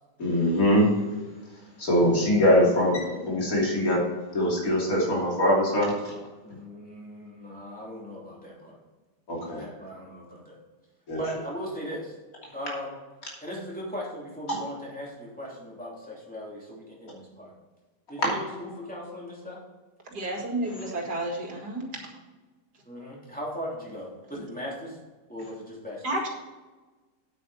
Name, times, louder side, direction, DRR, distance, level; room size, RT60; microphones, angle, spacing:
voice 1, 0.2-0.9 1.8-4.0 4.3-6.1 9.3-9.6 11.1-11.2 14.5-14.6 18.2-18.3, equal, 55° left, -3 dB, 3.4 m, -22 dB
voice 2, 6.4-8.8 9.4-10.6 11.2-12.1 12.5-12.9 13.4-17.5 18.1-19.6 22.8-25.0 25.3-26.0, equal, 5° left, -4 dB, 3.0 m, -38 dB
voice 3, 20.1-22.1 26.0-26.3, right 1 dB, 70° right, 0 dB, 2.6 m, -31 dB
9.2 x 8.7 x 4.2 m, 1.3 s
omnidirectional pair, 1.8 m